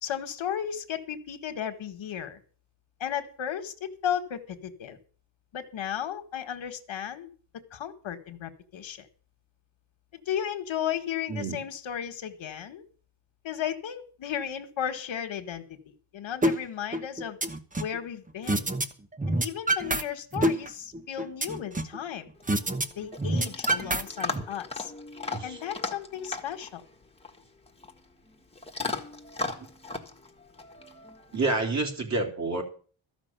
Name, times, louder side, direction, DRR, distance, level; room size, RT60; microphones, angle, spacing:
voice 1, 0.0-2.4 3.0-5.0 5.5-7.3 7.7-9.1 10.1-12.8 13.4-17.4 17.8-18.7 19.3-22.3 22.9-24.9 25.4-26.8, left 9 dB, 75° left, 6 dB, 1.7 m, -34 dB
sound 1, 16.4-16.5 16.9-18.0 18.5-18.9 19.1-20.0 20.3-22.0 22.5-22.8 23.1-24.4, right 1 dB, 15° right, 1.0 m, -26 dB
Chewing mastication / Dog, 22.4-31.5, left 3 dB, 10° left, 1.5 m, -38 dB
voice 2, 31.3-32.6, right 3 dB, 35° right, 2 dB, 3.2 m, -28 dB
14.0 x 6.2 x 8.9 m, 0.41 s
wide cardioid pair, 155°, 46 cm